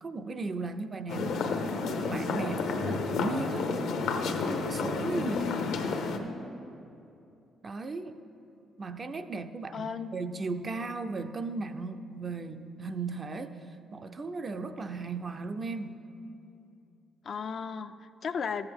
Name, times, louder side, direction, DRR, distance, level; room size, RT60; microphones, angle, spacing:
voice 1, 0.0-1.3 2.1-3.7 4.2-5.5 7.6-8.2 8.8-13.6 13.9-16.0, right 3 dB, 35° right, 8 dB, 0.5 m, -36 dB
sound 1, 1.1-6.2, left 4 dB, 80° left, 0.8 m, -31 dB
voice 2, 5.2-5.7 9.7-10.1 17.2-18.7, left 6 dB, 55° left, 10 dB, 0.3 m, -35 dB
13.5 x 7.9 x 3.6 m, 2.7 s
cardioid pair, 90°, 0 cm